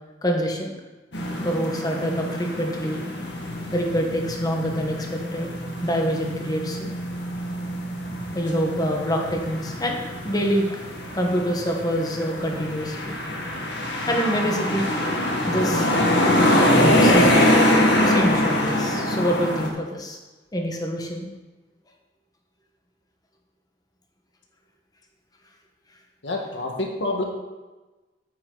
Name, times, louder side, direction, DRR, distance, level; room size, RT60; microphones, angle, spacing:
voice 1, 0.2-0.7 1.4-3.0 3.7-5.5 5.8-6.9 8.3-10.8 11.1-13.2 14.1-14.9 15.5-15.9 16.5-17.4 18.0-20.2 20.5-21.3, equal, 20° left, 1 dB, 1.3 m, -26 dB
sound 1, 1.1-19.7, left 1 dB, 75° left, 1.6 m, -24 dB
voice 2, 26.2-27.2, left 2 dB, 90° left, 2 dB, 1.5 m, -27 dB
8.7 x 8.7 x 3.9 m, 1.2 s
head